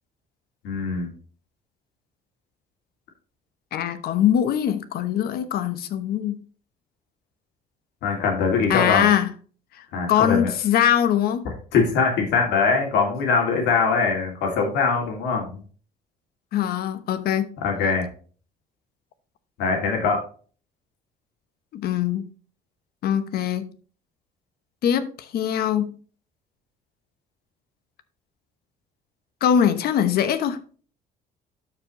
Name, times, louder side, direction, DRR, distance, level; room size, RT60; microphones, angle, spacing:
voice 1, 0.6-1.1 8.0-9.1 9.9-10.5 11.7-15.6 17.6-18.1 19.6-20.2, left 5 dB, 90° left, 2.5 m, -22 dB
voice 2, 3.7-6.4 8.7-9.3 9.8-11.5 16.5-17.5 21.7-22.2 23.0-23.7 24.8-25.9 29.4-30.6, left 9 dB, 65° left, 1.0 m, -22 dB
12.5 x 4.9 x 3.1 m
cardioid pair, 110°, 17 cm